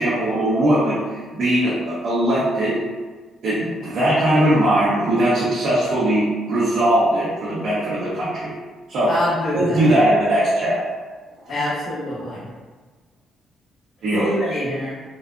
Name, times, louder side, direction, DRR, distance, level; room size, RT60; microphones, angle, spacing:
voice 1, 0.0-1.8 2.0-2.8 3.4-8.5 8.9-9.1 9.5-10.8 14.0-14.3, right 1 dB, 70° right, -11 dB, 1.1 m, -19 dB
voice 2, 9.1-9.9 11.5-12.5 14.1-14.9, left 1 dB, 65° left, -11 dB, 1.0 m, -25 dB
4.1 x 2.2 x 2.5 m, 1.4 s
cardioid pair, 90°, 0 cm